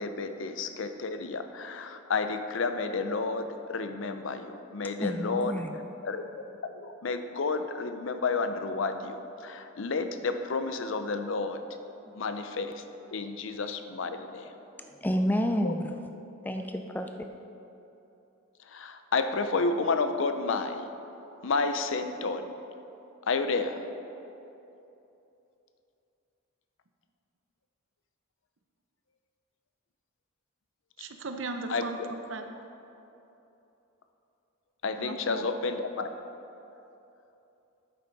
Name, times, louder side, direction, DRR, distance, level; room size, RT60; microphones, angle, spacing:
voice 1, 0.0-5.5 6.0-6.2 6.8-11.6 12.2-12.8 13.1-14.5 15.6-15.7 18.7-20.9 21.4-22.5 23.3-23.8 31.7-32.1 34.8-36.1, left 4 dB, 65° left, 8 dB, 0.5 m, -31 dB
voice 2, 5.0-5.8 14.8-15.9 16.4-17.1, equal, 10° left, 5 dB, 0.3 m, -29 dB
voice 3, 31.0-32.4 35.0-35.5, right 3 dB, 60° right, 6 dB, 0.7 m, -37 dB
10.5 x 8.2 x 4.0 m, 2.9 s
head